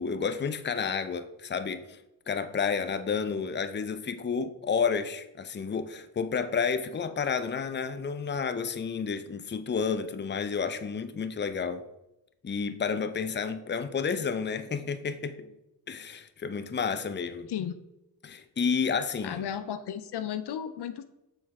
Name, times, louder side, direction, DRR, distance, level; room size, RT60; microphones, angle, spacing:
voice 1, 0.0-2.0 2.3-11.8 12.4-15.5 15.9-17.5 18.2-19.5, left 6 dB, 25° left, 0.6 m, -31 dB
voice 2, 19.2-21.0, left 9 dB, 65° left, 0.6 m, -34 dB
6.3 x 4.4 x 4.8 m
supercardioid pair, 50°, 44 cm